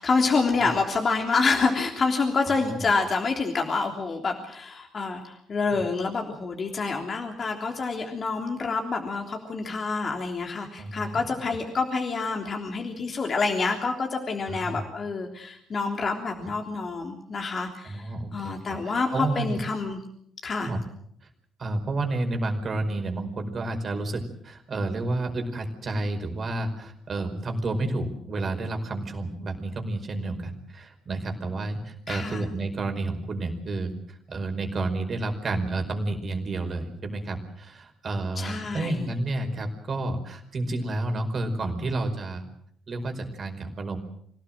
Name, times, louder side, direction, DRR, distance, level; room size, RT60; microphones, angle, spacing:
voice 1, 0.0-20.0 20.4-20.7 32.1-32.4 38.4-39.1, left 4 dB, 45° left, 3 dB, 3.4 m, -27 dB
voice 2, 2.4-2.9 5.7-5.8 10.8-11.2 14.5-14.8 17.8-18.6 19.1-19.6 20.6-20.8 21.6-42.4 42.9-44.0, right 2 dB, 45° right, 5 dB, 5.1 m, -30 dB
26.5 x 18.0 x 7.8 m, 0.69 s
figure-of-eight pair, 45°, 0 cm